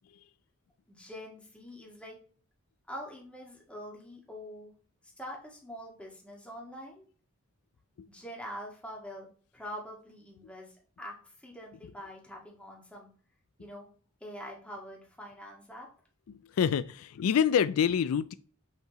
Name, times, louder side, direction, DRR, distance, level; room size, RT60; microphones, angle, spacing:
voice 1, 0.9-2.1 2.9-4.7 5.0-7.0 8.1-13.1 13.6-13.9 14.2-15.9, equal, 5° left, 1.8 m, -45 dB
voice 2, 16.3-18.3, left 7 dB, 75° left, 0.4 m, -27 dB
7.0 x 5.3 x 3.0 m
head